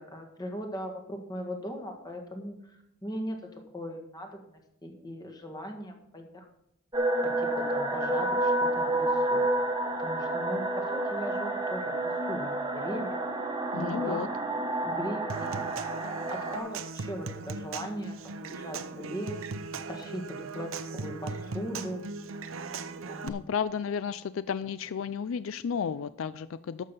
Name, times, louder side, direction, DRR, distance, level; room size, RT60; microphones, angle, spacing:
voice 1, 0.0-3.4 3.7-4.5 4.8-6.5 7.2-9.4 10.0-13.5 13.7-14.4 14.8-15.8 16.3-22.0 23.1-23.4, equal, 20° left, 3 dB, 1.8 m, -39 dB
sound 1, 6.9-16.6, right 1 dB, 20° right, 1.3 m, -29 dB
voice 2, 13.7-14.3 23.2-26.8, left 6 dB, 75° left, 15 dB, 0.4 m, -32 dB
Human voice / Acoustic guitar / Percussion, 15.3-23.3, right 4 dB, 85° right, 0.7 m, -38 dB
11.5 x 7.4 x 5.5 m, 0.77 s
head